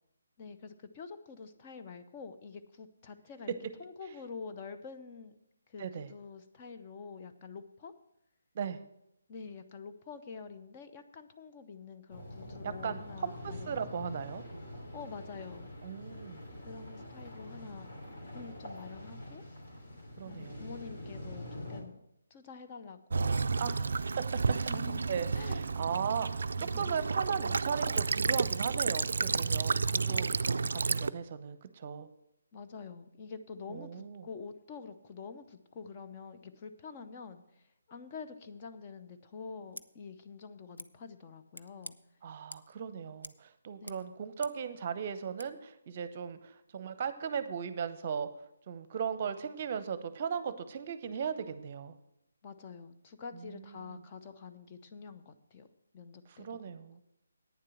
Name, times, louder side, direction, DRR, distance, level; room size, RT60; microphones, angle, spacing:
voice 1, 0.4-3.5 3.8-5.4 5.7-7.9 9.3-14.2 14.9-15.7 16.6-17.9 18.3-19.4 20.2-22.0 22.3-23.8 24.5-25.6 26.6-27.0 32.5-42.0 43.8-44.1 52.4-55.7 55.9-56.6, left 5 dB, 30° left, 7 dB, 0.7 m, -47 dB
voice 2, 5.8-6.1 8.5-8.8 12.6-14.4 15.8-16.4 20.2-20.6 23.6-24.4 25.1-30.3 30.7-32.1 33.7-34.3 42.2-48.3 48.7-52.0 53.8-54.0 56.4-57.0, right 7 dB, 40° right, 12 dB, 0.7 m, -37 dB
sound 1, 12.1-21.8, left 1 dB, 55° left, 3.2 m, -45 dB
Child speech kid speaking / Bird vocalization bird call bird song / Stream, 23.1-31.1, right 4 dB, 60° right, 0.3 m, -31 dB
Scissors, 39.7-39.9 40.8-40.9 41.5-42.0 42.5-42.8 43.2-43.4 43.7-44.7 45.4-45.5, left 1 dB, 85° left, 0.5 m, -48 dB
9.4 x 7.5 x 6.3 m, 0.81 s
figure-of-eight pair, 145°, 0 cm